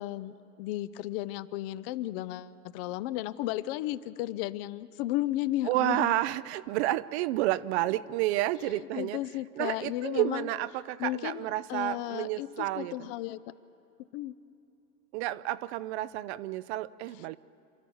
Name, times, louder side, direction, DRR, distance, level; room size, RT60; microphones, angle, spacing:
voice 1, 0.0-6.2 8.6-10.5 11.0-13.4 14.1-14.3, left 15 dB, 35° left, 16 dB, 0.5 m, -34 dB
voice 2, 5.6-9.2 9.6-13.1 15.1-17.4, right 15 dB, 45° right, 18 dB, 0.6 m, -30 dB
28.5 x 13.0 x 7.0 m, 2.7 s
hypercardioid pair, 105°, 49 cm